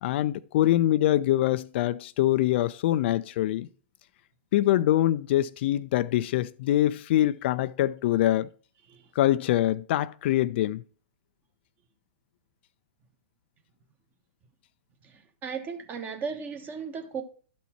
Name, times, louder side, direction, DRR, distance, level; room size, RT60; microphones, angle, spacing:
voice 1, 0.0-3.7 4.5-8.5 9.2-10.8, left 13 dB, 55° left, 0.4 m, -24 dB
voice 2, 15.0-17.2, right 6 dB, 25° right, 1.3 m, -36 dB
12.5 x 4.2 x 4.3 m
hypercardioid pair, 120°, 7 cm